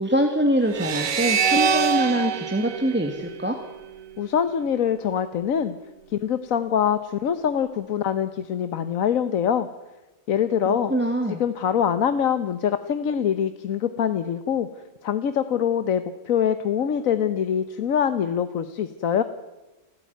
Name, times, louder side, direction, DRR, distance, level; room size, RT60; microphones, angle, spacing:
voice 1, 0.0-3.6 10.7-11.4, right 1 dB, 10° right, 3 dB, 1.8 m, -24 dB
sound 1, 0.7-4.0, right 6 dB, 80° right, 1.5 m, -25 dB
voice 2, 4.2-5.8 6.1-9.7 10.3-10.9 11.4-14.7 15.0-19.2, left 8 dB, 85° left, 11 dB, 1.4 m, -24 dB
29.5 x 13.0 x 9.3 m, 1.1 s
omnidirectional pair, 1.4 m